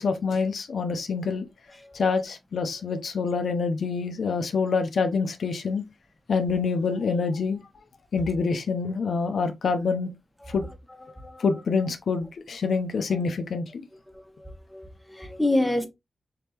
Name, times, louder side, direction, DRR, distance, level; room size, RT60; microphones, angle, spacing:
voice 1, 0.0-1.4 1.9-5.8 6.3-7.6 8.1-10.1 10.5-10.6 11.4-13.9, left 5 dB, 75° left, 0.5 m, -26 dB
voice 2, 14.4-15.9, left 1 dB, 5° left, 1.0 m, -27 dB
3.7 x 3.5 x 2.8 m
wide cardioid pair, 95°, 0 cm